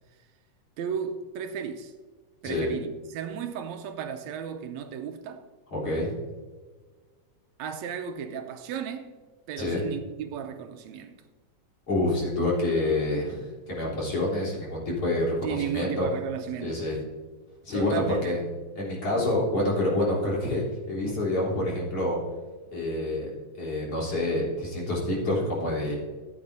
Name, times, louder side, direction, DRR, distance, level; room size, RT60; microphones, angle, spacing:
voice 1, 0.8-1.9 2.4-5.5 7.6-9.1 9.5-11.1 15.4-16.8 17.7-18.4, right 8 dB, 80° right, 1.9 m, -34 dB
voice 2, 5.7-6.1 9.6-9.8 11.9-16.1 16.6-17.0 17.6-18.4 18.8-22.2 22.7-23.3 23.6-26.0, left 1 dB, 50° left, 4.5 m, -27 dB
15.0 x 8.6 x 2.7 m
omnidirectional pair, 3.3 m